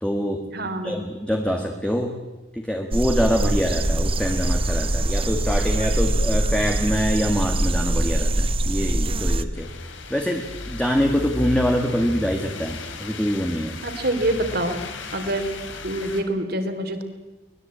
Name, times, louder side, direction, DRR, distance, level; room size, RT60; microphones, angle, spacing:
voice 1, 0.0-0.4 0.8-2.1 2.5-9.7 10.1-13.8, equal, 5° left, 2 dB, 1.9 m, -24 dB
voice 2, 0.5-1.1 13.8-14.8 15.1-15.5 15.8-17.0, right 1 dB, 50° right, 7 dB, 3.3 m, -26 dB
sound 1, 2.9-9.4, right 1 dB, 30° right, 1.0 m, -23 dB
sound 2, 9.5-16.2, left 2 dB, 75° left, 3.5 m, -35 dB
24.5 x 20.5 x 8.7 m, 1.1 s
head